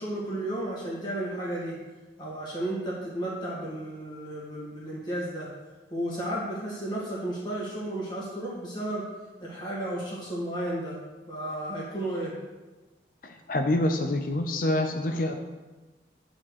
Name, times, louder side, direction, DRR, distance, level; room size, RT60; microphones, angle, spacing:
voice 1, 0.0-1.7 2.2-5.5 5.9-9.0 9.4-11.0 11.3-12.3, right 1 dB, 25° left, -6 dB, 1.9 m, -33 dB
voice 2, 13.2-15.3, left 1 dB, 50° left, 5 dB, 0.6 m, -26 dB
8.6 x 4.4 x 6.4 m, 1.2 s
head